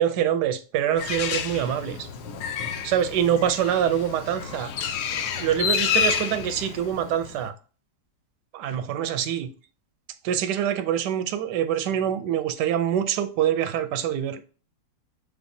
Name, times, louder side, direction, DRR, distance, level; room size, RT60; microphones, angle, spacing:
voice 1, 0.0-2.1 2.8-4.7 5.4-7.5 8.5-9.5 10.2-14.4, right 10 dB, 85° right, 1.2 m, -25 dB
Bird, 1.0-7.5, left 8 dB, 75° left, 1.2 m, -29 dB
6.0 x 3.4 x 2.6 m
omnidirectional pair, 1.8 m